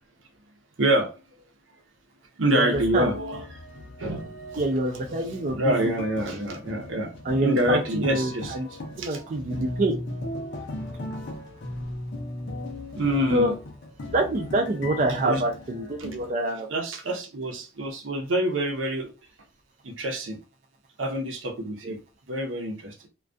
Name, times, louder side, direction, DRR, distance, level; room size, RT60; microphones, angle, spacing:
voice 1, 0.8-1.2 2.4-3.4 4.0-4.6 5.6-7.1 7.4-8.6 9.0-9.2 13.0-13.5 15.2-15.4 16.7-19.1 19.8-20.4 21.0-22.0 22.3-23.0, right 1 dB, 75° right, 0.7 m, -26 dB
voice 2, 2.5-3.1 4.6-6.0 7.2-8.7 9.0-10.0 13.3-13.5 14.1-16.7 21.8-21.9, right 1 dB, 40° right, 0.4 m, -26 dB
sound 1, 2.7-16.3, left 1 dB, 65° left, 0.6 m, -37 dB
2.3 x 2.2 x 2.5 m
head